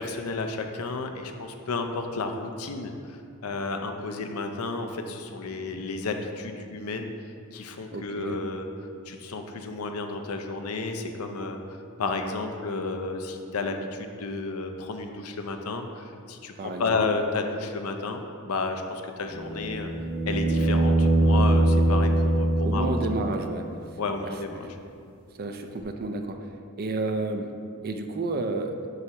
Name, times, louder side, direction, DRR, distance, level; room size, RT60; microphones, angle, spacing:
voice 1, 0.0-7.1 7.5-8.7 9.1-19.9 20.3-22.9 24.0-24.7, left 3 dB, 85° left, 5 dB, 0.6 m, -32 dB
voice 2, 7.9-8.4 16.6-17.0 22.6-23.7 24.2-24.6 25.4-26.4 26.8-27.5 27.8-28.8, right 2 dB, 45° right, 6 dB, 0.4 m, -31 dB
sound 1, 19.3-23.4 25.8-25.9, right 1 dB, 75° right, 1.0 m, -22 dB
7.8 x 3.0 x 5.6 m, 2.4 s
head